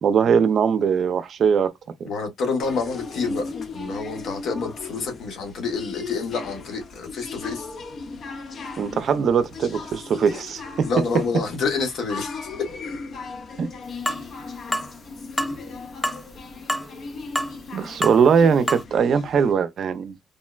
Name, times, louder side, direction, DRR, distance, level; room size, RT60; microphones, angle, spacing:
voice 1, 0.0-1.7 2.0-2.1 8.8-10.9 13.6-13.7 17.7-20.2, right 6 dB, 60° right, 0.5 m, -20 dB
voice 2, 2.0-7.7 10.8-12.3, left 4 dB, 70° left, 1.1 m, -28 dB
sound 1, 2.6-19.5, left 4 dB, 55° left, 0.7 m, -37 dB
sound 2, 14.1-14.2 14.7-14.9 15.4-15.6 16.0-16.2 16.7-16.9 17.4-17.5 18.0-18.2 18.7-18.8, equal, 5° left, 0.3 m, -26 dB
3.6 x 2.1 x 2.3 m
cardioid pair, 90°, 0 cm